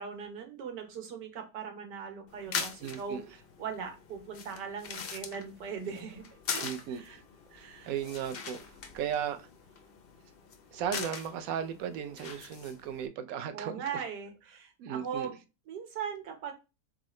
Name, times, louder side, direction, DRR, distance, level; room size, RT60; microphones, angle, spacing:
voice 1, 0.0-7.2 7.5-7.9 13.5-15.4 15.7-16.5, right 6 dB, 85° right, 1.6 m, -40 dB
sound 1, 2.3-13.1, left 6 dB, 75° left, 0.5 m, -42 dB
voice 2, 2.8-3.2 6.6-7.0 7.6-9.5 10.7-14.0 14.8-15.3, right 9 dB, 70° right, 0.9 m, -36 dB
3.9 x 3.7 x 3.1 m
omnidirectional pair, 1.8 m